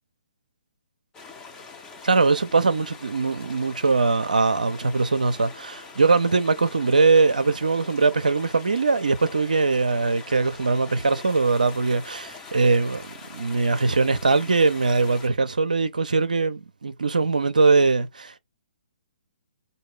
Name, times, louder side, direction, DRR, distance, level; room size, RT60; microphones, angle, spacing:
sound 1, 1.1-15.3, left 4 dB, 15° left, 0.6 m, -44 dB
voice 1, 2.0-18.4, right 4 dB, 65° right, 0.5 m, -21 dB
4.4 x 2.2 x 3.1 m
figure-of-eight pair, 130°, 5 cm